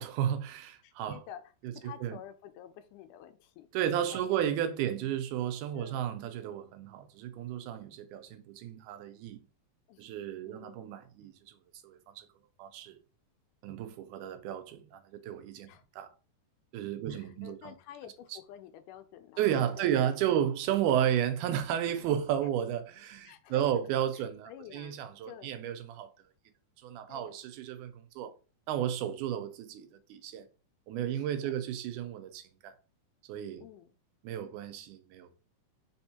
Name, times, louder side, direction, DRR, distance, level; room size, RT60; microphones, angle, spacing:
voice 1, 0.0-1.2 1.6-1.7 2.0-2.2 3.7-9.4 10.0-11.6 11.8-12.3 12.6-13.0 13.6-16.1 16.7-17.7 19.4-26.1 26.8-28.3 28.7-30.5 30.9-32.7 33.3-33.6 34.2-35.3, right 10 dB, 85° right, 2.2 m, -33 dB
voice 2, 0.8-4.4 4.8-4.9 5.7-6.0 9.9-10.1 10.4-10.9 13.7-14.0 15.7-15.8 17.1-19.9 20.3-20.4 22.4-22.5 23.3-23.8 24.1-25.5 27.1-27.3 31.1-31.5 32.0-32.2 33.6-34.0, left 10 dB, 90° left, 2.1 m, -50 dB
4.9 x 3.5 x 2.8 m
omnidirectional pair, 3.5 m